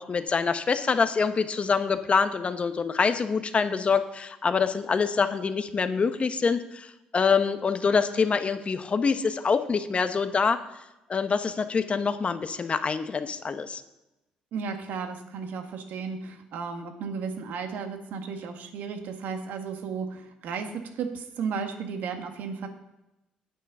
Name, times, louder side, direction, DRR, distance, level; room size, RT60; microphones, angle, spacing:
voice 1, 0.0-10.6 11.1-13.8, left 5 dB, 40° left, 10 dB, 1.2 m, -25 dB
voice 2, 14.5-22.7, right 5 dB, 70° right, 5 dB, 1.6 m, -34 dB
9.2 x 9.1 x 5.6 m, 0.97 s
hypercardioid pair, 55°, 3 cm